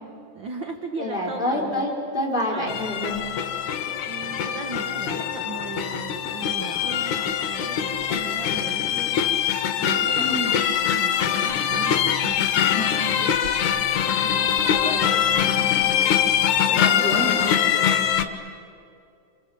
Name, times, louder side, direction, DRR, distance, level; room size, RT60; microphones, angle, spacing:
voice 1, 0.3-1.9 2.5-2.7 4.0-12.8 14.2-14.5 14.9-15.9 16.7-17.3, right 5 dB, 50° right, 4 dB, 1.4 m, -38 dB
voice 2, 1.0-3.2 10.1-10.6 12.7-13.0 14.7-15.3 16.8-17.5, left 1 dB, 15° left, -1 dB, 4.3 m, -28 dB
sound 1, 2.7-18.2, left 9 dB, 70° left, 2.4 m, -23 dB
27.5 x 26.5 x 7.6 m, 2.6 s
omnidirectional pair, 3.8 m